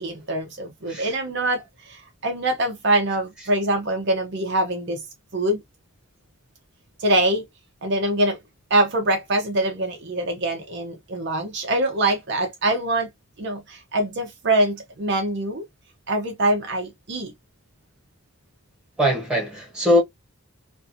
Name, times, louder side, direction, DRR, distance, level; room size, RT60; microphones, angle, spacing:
voice 1, 0.0-5.0 5.3-5.6 7.0-7.4 7.8-8.4 8.7-13.1 13.4-15.6 16.1-17.3, right 1 dB, 50° right, 0.6 m, -24 dB
voice 2, 19.0-20.0, left 1 dB, 5° right, 1.2 m, -21 dB
2.5 x 2.4 x 2.6 m
head